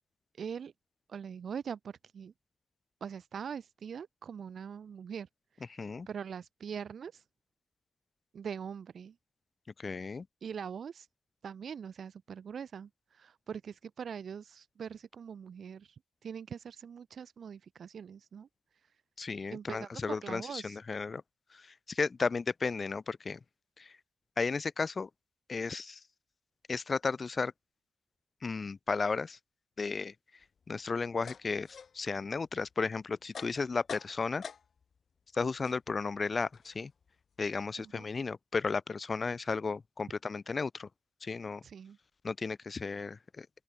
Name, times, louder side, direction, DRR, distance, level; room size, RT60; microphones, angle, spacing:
voice 1, 0.3-0.7 1.1-2.3 3.0-5.8 6.1-7.2 8.3-9.1 10.4-11.1 11.4-18.5 18.7-19.0 19.5-20.8 37.8-38.1 41.6-42.0, right 7 dB, 75° right, 1.1 m, -43 dB
voice 2, 5.7-6.1 9.8-10.3 19.2-21.2 21.5-23.4 23.8-23.9 24.4-25.1 25.5-26.0 26.7-27.5 28.4-29.4 29.8-30.1 30.7-31.7 31.9-34.4 35.3-36.9 37.4-40.9 41.2-41.6 42.2-43.5, left 4 dB, 45° left, 0.8 m, -34 dB
sound 1, 30.4-35.0 35.3-38.2, left 6 dB, 65° left, 2.8 m, -49 dB
open air
cardioid pair, 85°, 0 cm